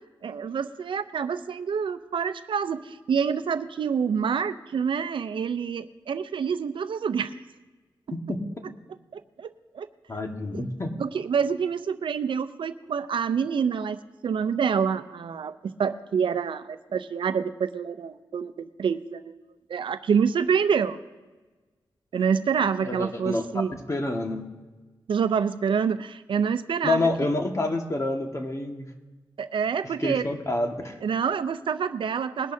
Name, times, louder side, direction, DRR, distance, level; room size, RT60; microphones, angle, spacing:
voice 1, 0.2-7.3 9.1-9.5 9.7-9.9 10.5-10.6 11.0-19.3 19.7-21.0 22.1-23.7 25.1-27.1 29.4-30.3 31.0-32.5, right 6 dB, 75° right, 11 dB, 0.6 m, -27 dB
voice 2, 8.1-8.4 10.1-10.9 22.8-23.4 23.9-24.4 26.8-28.9 30.0-31.0, left 2 dB, 35° left, 3 dB, 1.7 m, -28 dB
21.0 x 11.5 x 2.8 m, 1.3 s
cardioid pair, 70°, 9 cm